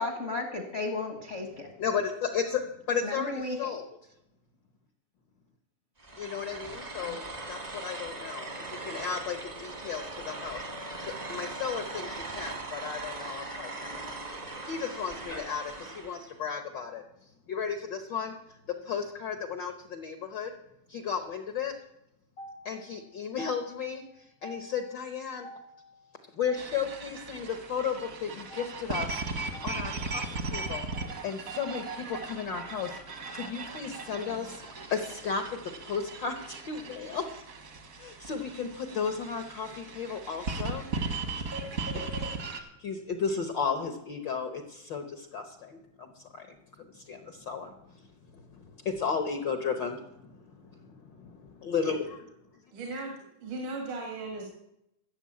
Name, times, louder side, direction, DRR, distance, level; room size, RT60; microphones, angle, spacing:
voice 1, 0.0-1.7 3.0-3.7 6.2-6.3 7.0-7.2 9.0-9.1, left 3 dB, 65° left, 4 dB, 0.7 m, -34 dB
voice 2, 1.8-3.9 6.2-10.6 11.0-14.3 14.6-17.0 17.5-18.3 18.8-20.5 20.9-21.7 22.4-29.2 29.5-30.2 30.5-33.0 33.3-37.2 37.9-40.9 41.4-41.5 42.1-42.2 42.5-46.5 46.9-48.0 48.3-52.3, left 6 dB, 85° left, 7 dB, 1.0 m, -34 dB
sound 1, 6.0-16.3, right 2 dB, 45° right, 0.5 m, -40 dB
sound 2, 26.6-42.6, right 3 dB, 60° right, 0.9 m, -38 dB
voice 3, 52.7-54.5, right 2 dB, 85° right, 1 dB, 3.4 m, -37 dB
14.5 x 7.1 x 8.6 m, 0.84 s
omnidirectional pair, 3.5 m